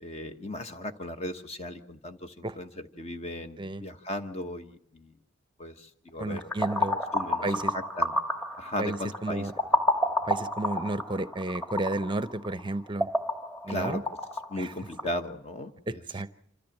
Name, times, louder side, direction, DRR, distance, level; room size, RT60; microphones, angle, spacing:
voice 1, 0.0-5.1 5.6-6.5 7.1-7.5 7.7-8.1 8.6-9.5 13.7-14.0 14.5-16.0, left 1 dB, 30° left, 7 dB, 1.1 m, -36 dB
voice 2, 6.2-7.0 7.4-7.7 8.8-9.5 10.2-13.1 13.6-14.0 14.6-14.7 15.9-16.3, right 2 dB, 25° right, 13 dB, 0.7 m, -32 dB
sound 1, 6.4-15.2, left 1 dB, 5° left, 1.4 m, -30 dB
26.5 x 14.0 x 7.3 m, 0.73 s
head